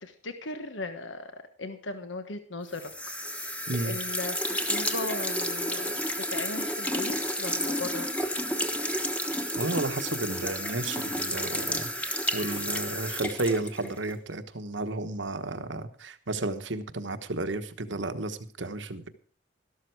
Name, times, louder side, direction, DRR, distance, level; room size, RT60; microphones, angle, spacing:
voice 1, 0.0-2.9 3.2-8.1, left 2 dB, 80° left, 8 dB, 1.3 m, -38 dB
sound 1, 2.7-14.2, equal, 5° left, 1.3 m, -31 dB
voice 2, 9.6-19.1, right 2 dB, 70° right, 10 dB, 1.2 m, -32 dB
13.5 x 12.5 x 4.7 m, 0.44 s
head